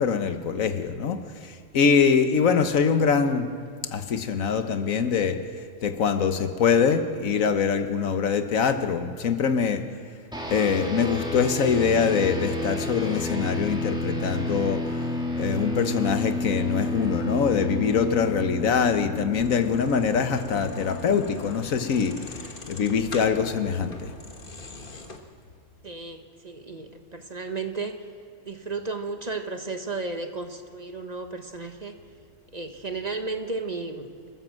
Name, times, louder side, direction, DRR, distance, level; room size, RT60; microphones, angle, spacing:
voice 1, 0.0-3.5 3.8-5.4 5.8-9.8 10.5-14.8 15.4-24.2, left 6 dB, 85° left, 8 dB, 1.5 m, -24 dB
sound 1, 10.3-22.0, left 1 dB, 5° right, 2.4 m, -31 dB
sound 2, 19.4-25.2, left 3 dB, 40° left, 1.6 m, -41 dB
voice 2, 25.8-28.0 28.4-32.0 32.5-34.3, right 3 dB, 30° right, 6 dB, 1.2 m, -34 dB
27.5 x 13.0 x 7.5 m, 2.1 s
omnidirectional pair, 1.4 m